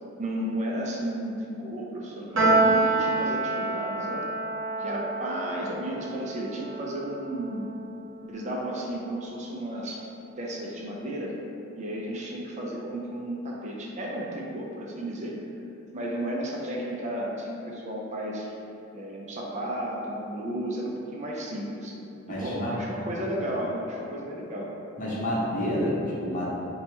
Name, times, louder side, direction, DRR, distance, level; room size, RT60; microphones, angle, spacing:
voice 1, 0.2-4.2 4.8-7.7 8.3-10.0 10.4-11.4 11.8-15.4 15.9-18.5 18.9-22.0 22.3-24.7, right 1 dB, 35° right, -3 dB, 0.4 m, -33 dB
Piano, 2.4-8.9, right 2 dB, 65° right, 0.7 m, -28 dB
voice 2, 22.3-22.8 25.0-26.5, equal, 40° left, -6 dB, 0.7 m, -28 dB
2.8 x 2.2 x 4.1 m, 2.7 s
head